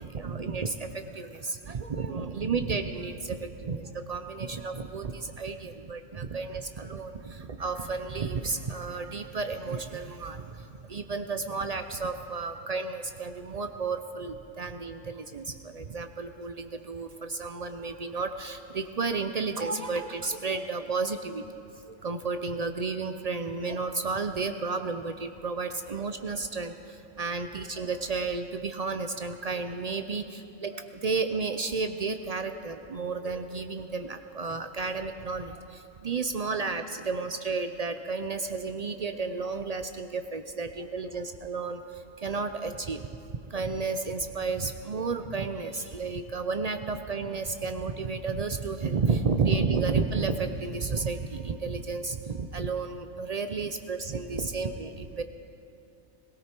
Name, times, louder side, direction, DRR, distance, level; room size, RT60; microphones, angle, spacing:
voice 1, 0.0-21.4 21.9-43.1 43.5-55.2, right 4 dB, 55° right, 7 dB, 0.4 m, -32 dB
18.0 x 17.0 x 4.4 m, 2.6 s
omnidirectional pair, 1.3 m